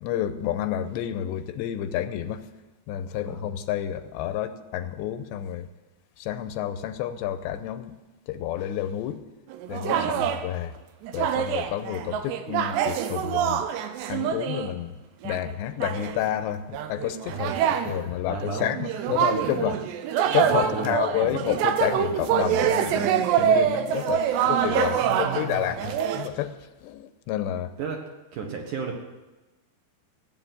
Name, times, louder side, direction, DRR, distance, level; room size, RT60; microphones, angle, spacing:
voice 1, 0.0-2.4 2.9-5.7 6.2-7.9 8.3-9.2 9.7-10.1 10.4-10.7 11.1-13.7 14.1-14.9 15.2-19.8 20.3-26.6 26.8-27.7, left 11 dB, 85° left, 10 dB, 2.9 m, -30 dB
sound 1, 9.5-10.4 11.0-14.7 15.2-15.5 15.8-16.2 16.7-26.3, right 9 dB, 80° right, 3.0 m, -25 dB
voice 2, 9.9-10.2 17.3-17.8 18.1-19.8 20.4-21.4 24.5-24.6 25.0-26.0 27.8-28.0 28.3-29.0, right 5 dB, 60° right, 1 dB, 2.3 m, -35 dB
16.0 x 8.5 x 9.4 m, 1.1 s
omnidirectional pair, 5.1 m